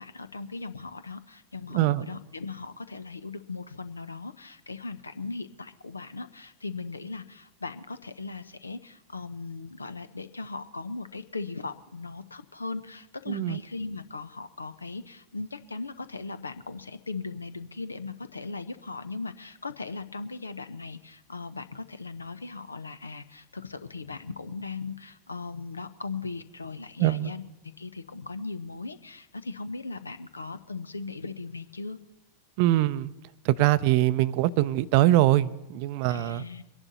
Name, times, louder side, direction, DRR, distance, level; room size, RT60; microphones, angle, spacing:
voice 1, 0.0-27.4 27.8-32.0 36.1-36.6, left 3 dB, 80° left, 13 dB, 0.7 m, -38 dB
voice 2, 1.7-2.1 13.3-13.6 27.0-27.3 32.6-33.1 33.4-36.4, right 15 dB, 45° right, 17 dB, 0.5 m, -23 dB
23.5 x 11.0 x 4.0 m, 0.95 s
figure-of-eight pair, 90°, 0 cm